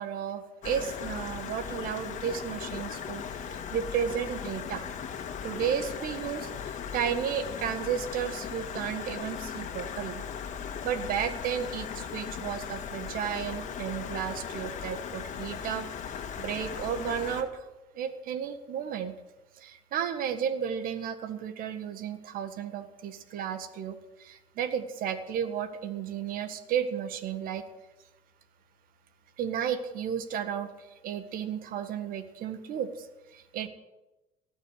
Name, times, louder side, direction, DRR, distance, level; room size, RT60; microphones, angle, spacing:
voice 1, 0.0-4.9 5.4-10.2 10.8-17.7 18.0-19.1 19.6-27.6 29.4-33.7, right 8 dB, 65° right, 10 dB, 1.7 m, -33 dB
Stream, 0.6-17.4, left 7 dB, 50° left, 1.9 m, -38 dB
18.0 x 6.5 x 10.0 m, 1.0 s
supercardioid pair, 75°, 16 cm